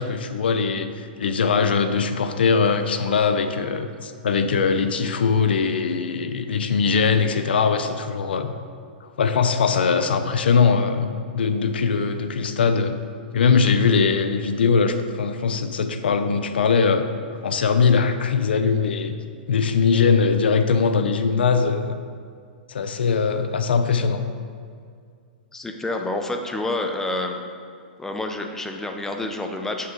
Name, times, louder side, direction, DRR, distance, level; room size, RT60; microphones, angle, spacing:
voice 1, 0.0-8.5 9.0-12.9 13.3-17.1 17.4-19.1 19.5-22.0 22.7-24.2, left 5 dB, 85° left, 9 dB, 0.5 m, -21 dB
voice 2, 25.5-27.4 28.0-29.9, left 2 dB, 10° left, 4 dB, 0.5 m, -28 dB
6.4 x 5.6 x 3.8 m, 2.2 s
hypercardioid pair, 135°, 5 cm